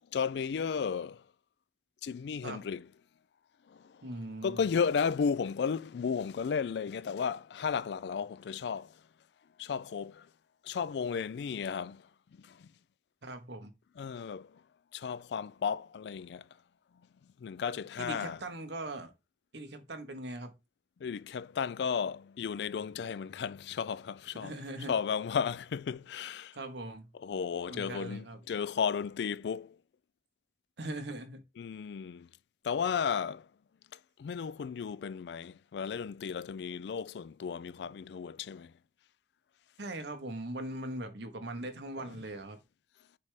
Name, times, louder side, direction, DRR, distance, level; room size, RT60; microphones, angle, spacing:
voice 1, 0.1-1.3 2.0-2.9 3.7-4.1 4.4-9.0 9.6-10.3 10.6-12.7 14.0-14.6 14.9-16.5 17.2-18.4 21.0-24.6 24.9-26.6 27.1-29.8 31.6-32.3 32.6-33.5 33.9-38.7 42.0-42.1, left 6 dB, 75° left, 0.3 m, -34 dB
voice 2, 4.0-4.6 13.2-13.7 18.0-19.1 19.5-20.5 24.4-24.9 26.5-27.1 27.7-28.4 30.8-31.4 39.8-42.6, right 1 dB, 80° right, 1.2 m, -40 dB
6.8 x 3.4 x 4.8 m
head